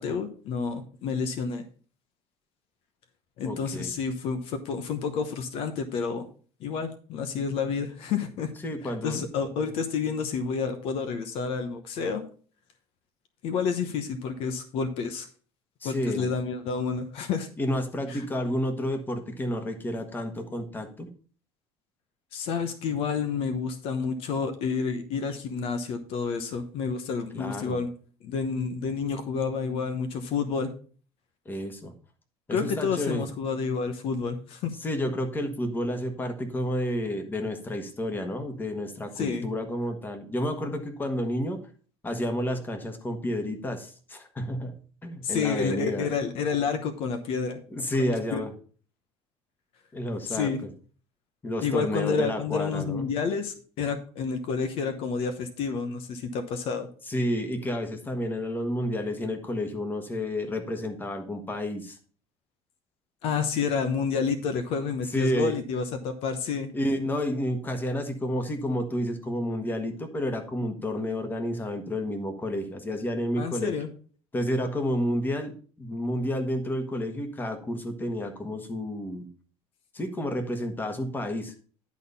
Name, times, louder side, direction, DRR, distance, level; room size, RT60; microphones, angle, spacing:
voice 1, 0.0-1.6 3.4-6.3 6.6-8.5 9.0-12.2 13.4-15.3 15.8-17.5 18.1-18.3 22.3-27.9 28.2-30.7 32.5-34.7 39.2-39.5 45.2-47.6 48.0-48.4 50.3-50.6 51.6-56.9 63.2-66.7 73.4-73.9, left 5 dB, 65° left, 9 dB, 1.0 m, -29 dB
voice 2, 3.4-3.9 8.6-9.3 15.8-16.3 17.6-21.1 27.3-27.8 31.4-31.9 32.5-33.3 34.8-41.6 42.0-46.1 47.7-48.5 49.9-50.5 51.4-53.1 57.1-62.0 65.1-65.5 66.7-73.8 74.3-75.5 75.8-79.3 79.9-81.5, left 1 dB, 20° left, 6 dB, 1.5 m, -30 dB
10.5 x 4.2 x 5.4 m, 0.42 s
cardioid pair, 130°, 10 cm